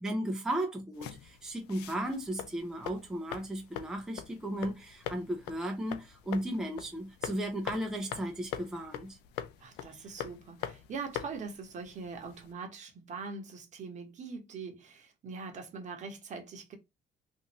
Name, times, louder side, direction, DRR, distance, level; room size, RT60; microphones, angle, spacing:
voice 1, 0.0-9.2 10.0-10.1, right 1 dB, 5° right, 0.5 m, -35 dB
sound 1, 0.9-12.5, left 10 dB, 85° left, 0.4 m, -44 dB
voice 2, 9.6-16.8, right 4 dB, 45° right, 1.0 m, -42 dB
2.7 x 2.5 x 2.9 m
cardioid pair, 110°, 17 cm